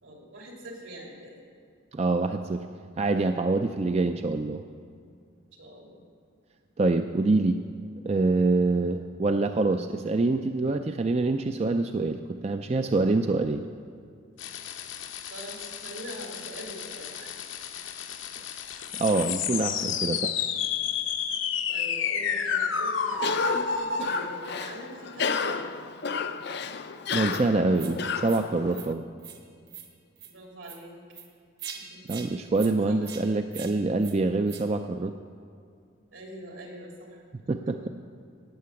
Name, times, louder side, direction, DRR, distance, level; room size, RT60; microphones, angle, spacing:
voice 1, 0.0-1.3 5.6-6.1 15.3-17.3 19.7-20.0 21.7-25.8 30.2-30.9 31.7-32.2 32.9-33.0 36.1-37.2 37.6-37.9, right 1 dB, 75° right, 0 dB, 3.0 m, -43 dB
voice 2, 1.9-2.6 3.0-4.6 6.8-7.6 8.0-13.7 18.9-20.3 27.1-29.1 32.1-35.1 37.5-37.8, right 3 dB, 30° right, 7 dB, 0.4 m, -25 dB
sound 1, 14.4-24.2, left 6 dB, 70° left, 0.9 m, -31 dB
Cough, 23.1-28.9, left 5 dB, 55° left, 0.5 m, -32 dB
sound 2, 27.3-27.4 27.8-27.9 28.2-28.4 28.7-28.9 29.2-29.4 29.7-29.9 30.2-30.3 30.6-30.8 31.1-31.3 31.6-31.8 32.1-32.3 32.6-32.7 33.0-33.2 33.5-33.7 34.0-34.2 34.5-34.6, right 9 dB, 55° right, 1.4 m, -42 dB
17.5 x 6.8 x 8.4 m, 2.3 s
head